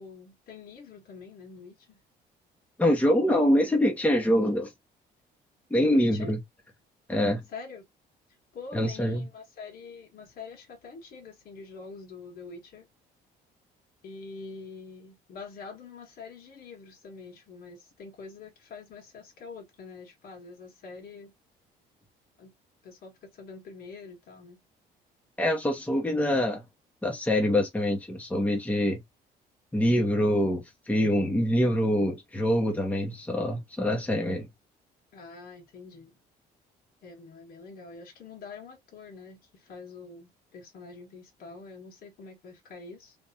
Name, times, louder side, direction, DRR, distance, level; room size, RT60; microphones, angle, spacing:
voice 1, 0.0-2.0 5.8-6.4 7.5-7.9 8.5-12.9 14.0-21.3 22.4-22.5 22.8-24.6 35.1-36.2 37.0-43.2, left 4 dB, 60° left, 2.0 m, -45 dB
voice 2, 2.8-4.7 5.7-6.4 7.1-7.4 8.7-9.2 25.4-26.6 27.0-29.0 29.7-34.5, equal, 10° left, 1.0 m, -25 dB
3.4 x 3.2 x 2.8 m
cardioid pair, 110°, 17 cm